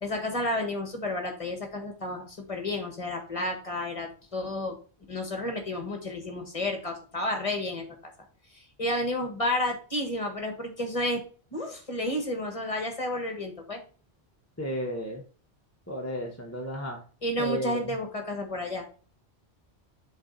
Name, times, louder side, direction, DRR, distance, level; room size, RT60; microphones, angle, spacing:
voice 1, 0.0-4.8 5.1-7.9 8.5-11.2 11.5-13.8 17.2-18.8, left 1 dB, 30° left, 4 dB, 1.4 m, -31 dB
voice 2, 14.6-15.2 15.9-17.0 17.4-17.8, equal, 15° left, 0 dB, 1.0 m, -33 dB
7.3 x 3.8 x 3.9 m, 0.39 s
omnidirectional pair, 1.1 m